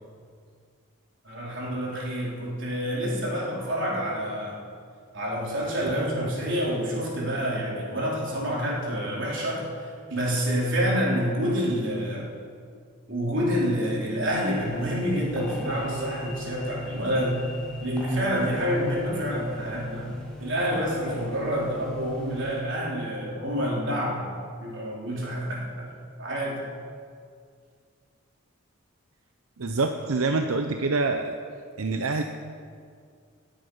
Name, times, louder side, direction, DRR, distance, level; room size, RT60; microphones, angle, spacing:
voice 1, 1.2-4.6 5.1-12.2 13.1-17.4 17.8-20.1 20.4-24.3 24.6-25.9 26.2-26.6, equal, 60° right, -5 dB, 3.9 m, -28 dB
sound 1, 14.2-22.6, left 2 dB, 5° left, 2.3 m, -41 dB
voice 2, 29.6-31.4 31.8-32.2, right 3 dB, 90° right, 6 dB, 0.7 m, -26 dB
18.5 x 8.9 x 5.6 m, 2.2 s
head